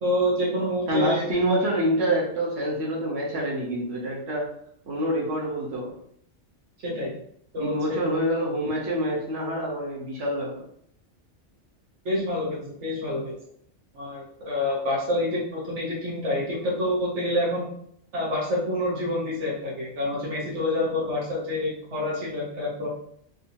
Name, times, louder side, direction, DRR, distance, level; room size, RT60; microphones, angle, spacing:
voice 1, 0.0-1.3 6.8-7.2 7.5-8.0 12.0-13.3 13.9-17.7 18.1-22.9, left 1 dB, 85° right, -5 dB, 1.3 m, -27 dB
voice 2, 0.9-4.5 4.9-5.9 7.6-10.7, equal, 65° right, -4 dB, 1.3 m, -26 dB
3.7 x 2.8 x 2.6 m, 0.66 s
omnidirectional pair, 1.2 m